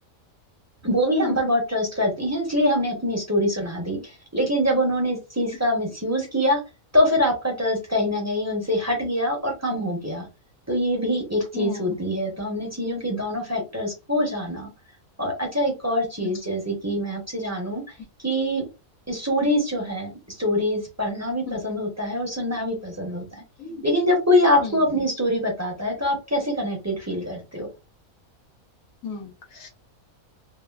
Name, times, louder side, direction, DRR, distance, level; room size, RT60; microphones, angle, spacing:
voice 1, 0.8-6.6 6.9-10.3 10.7-14.7 15.2-17.8 18.2-18.6 19.1-23.2 23.8-27.7, left 1 dB, 15° right, 0 dB, 0.6 m, -24 dB
voice 2, 11.5-12.0 13.5-13.6 16.2-16.5 21.4-21.6 23.6-23.8 24.6-24.8 29.0-29.7, left 5 dB, 70° left, 2 dB, 1.3 m, -35 dB
2.9 x 2.4 x 2.3 m, 0.28 s
omnidirectional pair, 1.5 m